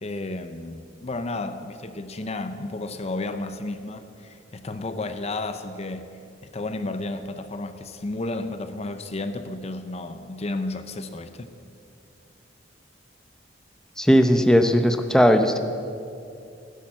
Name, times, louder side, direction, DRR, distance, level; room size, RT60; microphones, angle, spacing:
voice 1, 0.0-11.5, left 2 dB, 35° left, 10 dB, 0.6 m, -32 dB
voice 2, 14.0-15.6, equal, 5° left, 6 dB, 0.7 m, -18 dB
16.0 x 10.0 x 7.5 m, 2.5 s
head